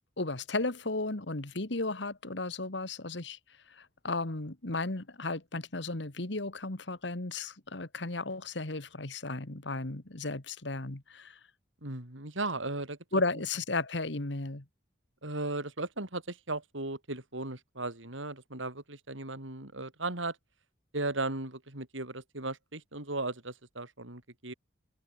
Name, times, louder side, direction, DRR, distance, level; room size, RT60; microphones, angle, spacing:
voice 1, 0.2-3.4 3.7-11.4 13.1-14.7, left 3 dB, 70° left, 1.8 m, -34 dB
voice 2, 11.8-13.2 15.2-20.4 20.9-24.5, right 2 dB, 85° right, 4.8 m, -36 dB
open air
head